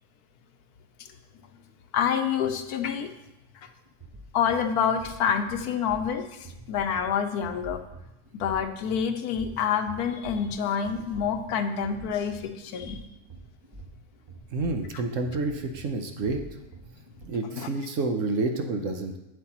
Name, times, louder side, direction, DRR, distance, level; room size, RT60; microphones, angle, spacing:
voice 1, 1.9-3.1 4.3-7.8 8.3-13.0 17.5-17.7, left 7 dB, 80° left, 8 dB, 1.2 m, -27 dB
sound 1, 3.7-17.3, right 2 dB, 45° right, 0.3 m, -46 dB
voice 2, 14.5-16.4 17.2-19.2, right 3 dB, 60° right, 5 dB, 1.0 m, -29 dB
8.5 x 7.8 x 2.9 m, 0.98 s
omnidirectional pair, 1.6 m